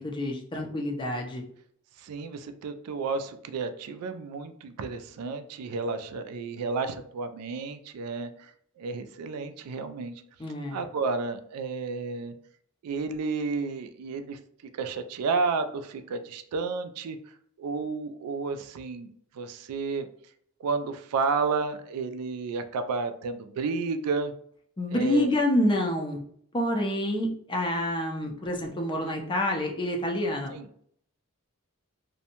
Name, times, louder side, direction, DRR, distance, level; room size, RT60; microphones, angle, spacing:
voice 1, 0.0-1.4 10.4-10.8 24.8-26.2 26.5-30.5, left 1 dB, 20° left, 2 dB, 0.4 m, -27 dB
voice 2, 2.0-8.5 8.8-10.1 10.7-12.3 12.8-14.4 14.7-17.2 17.6-19.1 19.3-20.1 20.6-24.3 24.9-25.3 30.5-30.7, right 4 dB, 90° right, 9 dB, 0.3 m, -31 dB
2.6 x 2.1 x 2.8 m, 0.64 s
head